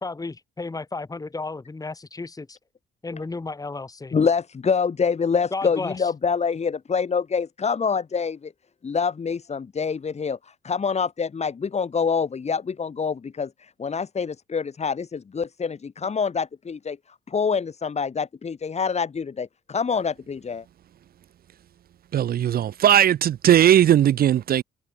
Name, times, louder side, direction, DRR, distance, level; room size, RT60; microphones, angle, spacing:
voice 1, 0.0-2.6 3.0-4.1 5.5-5.9, left 3 dB, 20° left, 1.5 m, -33 dB
voice 2, 4.1-8.5 8.8-20.6, left 5 dB, 35° left, 1.3 m, -26 dB
voice 3, 22.1-24.6, right 10 dB, 50° right, 0.4 m, -18 dB
cardioid pair, 90°, 20 cm